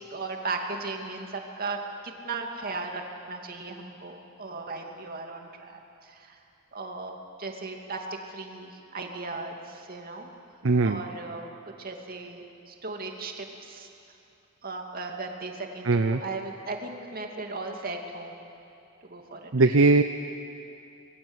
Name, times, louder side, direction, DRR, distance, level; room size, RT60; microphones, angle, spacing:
voice 1, 0.1-1.8 2.2-3.0 3.3-6.4 6.7-10.3 10.8-11.5 11.8-13.9 14.6-18.3 19.0-19.7, right 3 dB, 45° right, 2 dB, 2.6 m, -37 dB
voice 2, 10.6-11.0 15.8-16.2 19.5-20.0, right 3 dB, 65° right, 8 dB, 0.7 m, -20 dB
26.0 x 21.0 x 8.2 m, 2.7 s
head